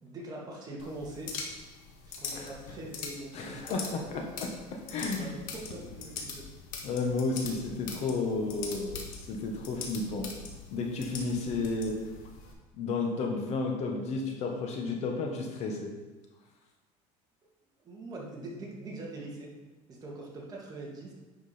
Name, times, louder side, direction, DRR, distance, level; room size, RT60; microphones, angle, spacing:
voice 1, 0.0-1.3 2.1-4.4 4.9-6.5 17.8-19.5 19.9-21.1, right 2 dB, 25° right, -3 dB, 2.2 m, -43 dB
sound 1, 0.8-12.5, left 5 dB, 70° left, 1.8 m, -43 dB
voice 2, 3.3-4.5 4.9-5.3 6.8-10.3 10.7-12.0 12.7-15.9, left 3 dB, 45° left, 2 dB, 1.4 m, -32 dB
9.9 x 5.0 x 5.1 m, 1.2 s
cardioid pair, 145°, 15 cm